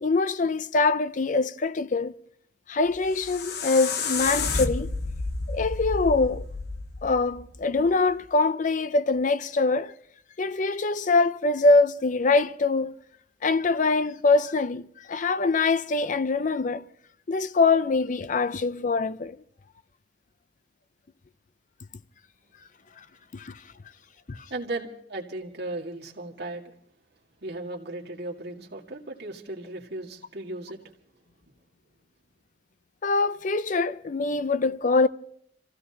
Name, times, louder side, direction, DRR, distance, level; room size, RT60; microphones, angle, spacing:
voice 1, 0.0-2.2 2.7-4.9 5.5-6.5 7.0-9.9 10.4-13.0 13.4-16.9 17.3-19.4 23.3-23.6 24.3-24.4 33.0-35.1, left 3 dB, 40° left, 0.5 m, -24 dB
sound 1, 2.9-8.0, left 4 dB, 60° left, 1.0 m, -31 dB
voice 2, 24.5-26.7 27.4-30.8, right 2 dB, 60° right, 2.0 m, -36 dB
28.5 x 15.5 x 2.9 m
head